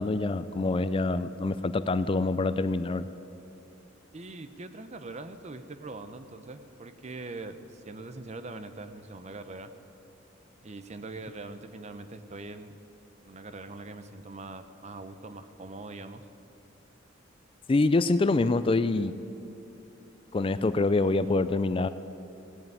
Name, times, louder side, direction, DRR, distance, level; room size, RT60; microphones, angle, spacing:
voice 1, 0.0-3.1 17.7-19.1 20.3-21.9, left 3 dB, 30° left, 13 dB, 0.4 m, -25 dB
voice 2, 4.1-9.7 10.6-12.7 13.2-16.2, right 2 dB, 35° right, 10 dB, 0.8 m, -42 dB
17.0 x 9.0 x 9.3 m, 2.7 s
head